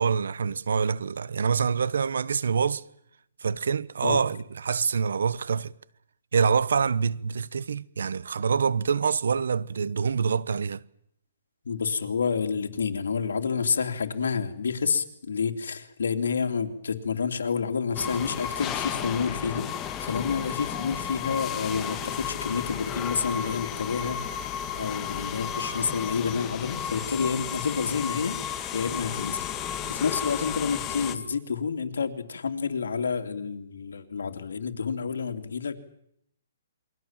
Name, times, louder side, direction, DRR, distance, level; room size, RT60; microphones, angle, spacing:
voice 1, 0.0-2.8 3.4-5.7 6.3-10.8, right 6 dB, 85° right, 1.1 m, -26 dB
voice 2, 11.6-29.5 29.9-35.8, left 5 dB, 90° left, 2.9 m, -29 dB
sound 1, 17.9-31.1, left 9 dB, 20° left, 1.8 m, -33 dB
28.5 x 23.0 x 7.5 m
hypercardioid pair, 155°, 0 cm